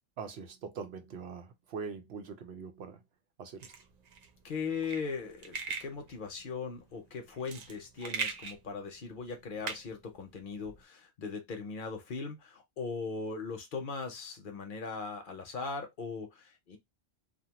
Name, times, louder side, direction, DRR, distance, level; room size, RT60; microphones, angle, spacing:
voice 1, 0.2-3.0 3.4-3.7, right 5 dB, 85° right, 0.9 m, -42 dB
sound 1, 3.6-10.8, right 5 dB, 55° right, 0.5 m, -41 dB
voice 2, 4.4-16.8, left 4 dB, 60° left, 0.8 m, -39 dB
2.7 x 2.2 x 2.8 m
omnidirectional pair, 1.0 m